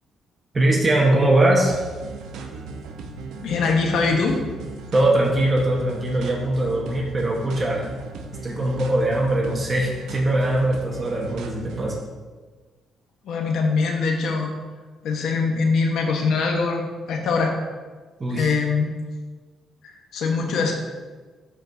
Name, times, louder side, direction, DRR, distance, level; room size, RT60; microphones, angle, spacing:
voice 1, 0.5-1.7 4.9-7.8 8.4-11.9 18.2-18.5, right 1 dB, 30° right, -2 dB, 1.3 m, -21 dB
sound 1, 1.7-12.0, right 4 dB, 85° right, 0.7 m, -36 dB
voice 2, 3.4-4.4 13.2-14.5 15.0-17.5 18.4-18.9 19.8-20.7, left 4 dB, 75° left, 2 dB, 1.3 m, -22 dB
13.0 x 4.5 x 2.8 m, 1.4 s
cardioid pair, 90°, 0 cm